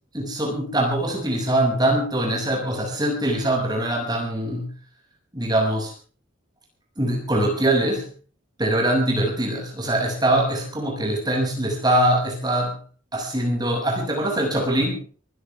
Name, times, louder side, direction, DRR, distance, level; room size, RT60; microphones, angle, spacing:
voice 1, 0.1-4.7 5.3-5.9 7.0-8.1 8.6-12.8 13.1-15.0, right 1 dB, 20° right, 1 dB, 6.9 m, -23 dB
24.5 x 16.0 x 3.5 m, 0.40 s
head